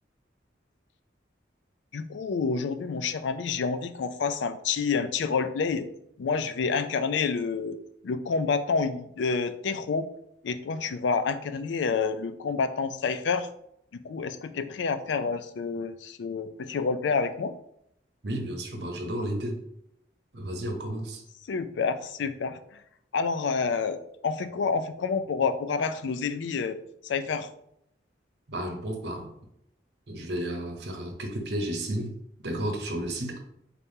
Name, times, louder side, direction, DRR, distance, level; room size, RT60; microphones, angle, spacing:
voice 1, 1.9-5.9 6.2-7.8 8.0-10.1 10.4-13.5 14.0-17.6 21.5-22.6 23.1-24.0 24.2-26.8 27.0-27.5, left 5 dB, 85° left, 11 dB, 0.4 m, -28 dB
voice 2, 18.2-19.6 20.3-21.2 28.5-29.3 30.1-32.1 32.4-33.4, right 1 dB, 70° right, 3 dB, 0.8 m, -32 dB
4.2 x 2.7 x 3.6 m, 0.73 s
head